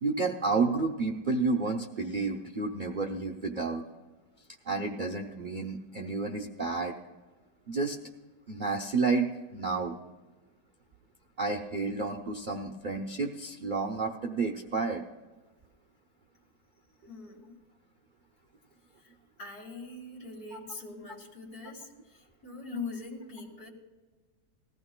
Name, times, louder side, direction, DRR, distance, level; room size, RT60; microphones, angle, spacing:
voice 1, 0.0-3.8 4.6-6.9 7.7-8.0 8.5-10.0 11.4-15.0 20.5-20.6, right 4 dB, 75° right, 2 dB, 0.4 m, -30 dB
voice 2, 17.1-17.6 19.4-23.7, left 3 dB, 60° left, -2 dB, 2.3 m, -42 dB
19.5 x 15.0 x 2.2 m, 1.3 s
omnidirectional pair, 1.8 m